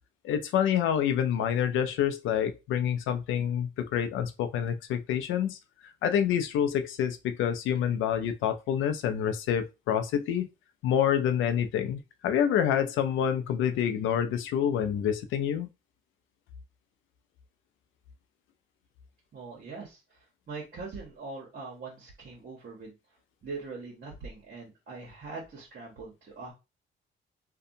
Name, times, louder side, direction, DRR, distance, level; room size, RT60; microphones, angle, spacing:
voice 1, 0.2-5.6 6.0-10.5 10.8-15.7, left 9 dB, 80° left, 0.5 m, -27 dB
voice 2, 19.3-20.0 20.5-22.9 23.4-26.5, right 4 dB, 50° right, 1.0 m, -42 dB
2.6 x 2.2 x 2.6 m
cardioid pair, 90°, 20 cm